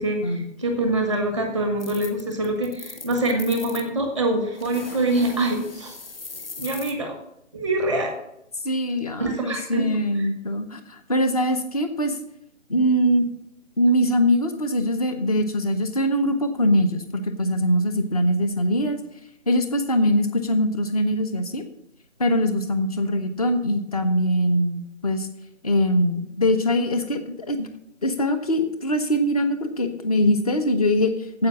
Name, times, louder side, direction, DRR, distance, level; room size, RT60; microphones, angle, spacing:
voice 1, 0.0-6.0 6.6-7.1 7.5-8.2 9.2-9.9 10.1-10.3, right 1 dB, 5° left, 4 dB, 1.0 m, -25 dB
sound 1, 1.8-3.9 4.5-6.9, left 3 dB, 50° left, 1.3 m, -39 dB
voice 2, 8.6-12.2 12.7-13.2 13.8-19.0 19.5-21.6 22.2-25.3 25.6-27.7 28.0-31.5, equal, 30° left, 8 dB, 1.0 m, -22 dB
9.2 x 7.9 x 7.2 m, 0.79 s
figure-of-eight pair, 150°, 37 cm